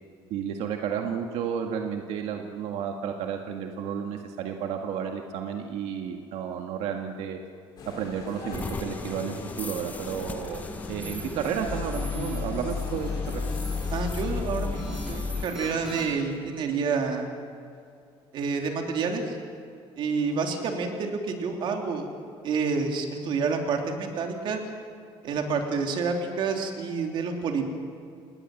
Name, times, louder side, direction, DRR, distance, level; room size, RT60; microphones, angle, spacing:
voice 1, 0.3-7.4 7.9-13.4 20.3-20.4, right 7 dB, 85° right, 3 dB, 1.8 m, -32 dB
sound 1, 7.8-16.0, left 2 dB, 40° left, 5.7 m, -40 dB
sound 2, 8.5-15.5, left 4 dB, 15° left, 0.7 m, -33 dB
sound 3, 10.4-10.6 11.0-11.5 11.9-12.4 12.7-13.3 13.6-14.2 14.8-16.3, equal, 5° right, 7.4 m, -44 dB
voice 2, 13.9-17.3 18.3-19.4 20.0-22.1 22.4-24.6 25.2-27.6, right 5 dB, 50° right, 3 dB, 3.1 m, -28 dB
28.0 x 20.0 x 7.8 m, 2.5 s
cardioid pair, 175°, 10 cm